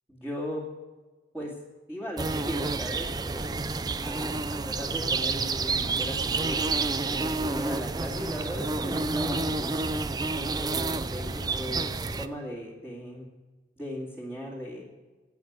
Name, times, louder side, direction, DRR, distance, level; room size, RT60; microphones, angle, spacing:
voice 1, 0.1-0.6 1.3-1.5 1.9-3.6 4.0-6.6 7.1-9.7 10.3-13.2 13.8-14.8, left 1 dB, 5° right, -7 dB, 2.1 m, -37 dB
sound 1, 2.2-12.3, right 3 dB, 20° right, 0.4 m, -29 dB
11.5 x 8.8 x 9.3 m, 1.3 s
head